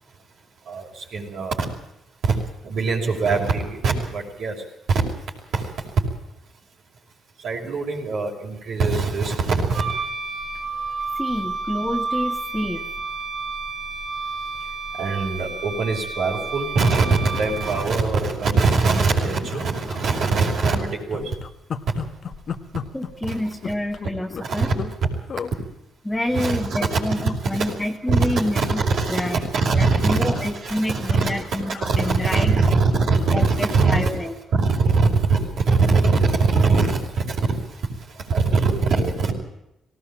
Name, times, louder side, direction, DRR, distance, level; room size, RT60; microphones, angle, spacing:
voice 1, 0.7-1.7 2.2-2.4 2.6-4.6 4.9-5.0 5.5-5.7 7.4-9.8 15.0-21.3 23.2-23.4 24.4-24.8 26.3-27.7 28.1-34.1 34.5-37.4 38.3-39.3, right 4 dB, 70° right, -2 dB, 5.6 m, -22 dB
Wind instrument woodwind instrument, 9.7-18.0, right 4 dB, 45° right, 4.3 m, -30 dB
voice 2, 11.2-12.9 22.9-24.7 26.0-28.8 29.1-29.4 29.7-32.8 33.3-34.3, left 1 dB, 10° left, 0 dB, 1.8 m, -27 dB
sound 1, 17.3-17.5 18.0-18.7 19.0-19.1 19.5-20.4 20.7-25.0 25.3-25.5 26.1-26.9 27.2-27.4 27.7-28.8 29.1-33.6 34.0-34.1, left 6 dB, 55° left, 1.3 m, -36 dB
19.0 x 17.5 x 8.9 m, 0.86 s
cardioid pair, 90°, 0 cm